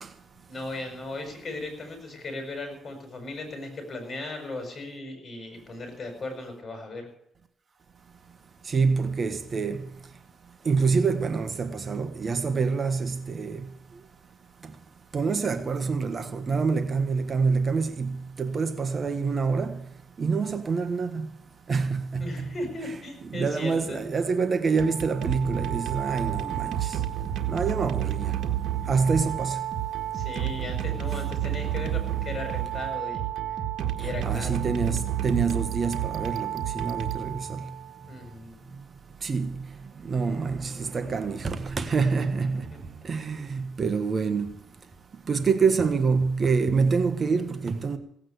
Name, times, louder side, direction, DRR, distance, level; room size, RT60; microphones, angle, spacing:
voice 1, 0.5-7.1 22.2-24.0 28.8-28.9 30.1-33.2 33.9-34.6 38.1-38.6 42.7-42.8, left 2 dB, 35° left, 6.8 m, -37 dB
voice 2, 8.7-9.8 10.6-13.6 15.1-19.8 20.2-21.3 21.7-22.4 22.8-23.0 23.2-27.0 27.5-28.4 28.9-29.6 34.0-37.6 39.2-39.5 40.0-42.6 43.0-44.5 45.3-48.0, right 5 dB, 40° right, 1.4 m, -26 dB
sound 1, 24.7-37.9, right 11 dB, 75° right, 1.7 m, -30 dB
17.0 x 8.8 x 8.1 m
cardioid pair, 90°, 0 cm